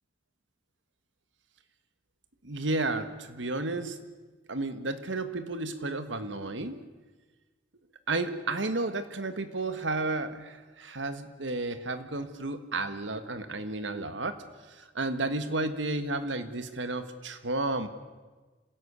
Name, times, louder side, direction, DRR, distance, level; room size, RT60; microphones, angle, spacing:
voice 1, 2.4-4.0 4.5-6.7 8.1-14.4 14.7-17.9, right 2 dB, 90° right, 10 dB, 1.7 m, -32 dB
26.5 x 16.5 x 8.3 m, 1.3 s
head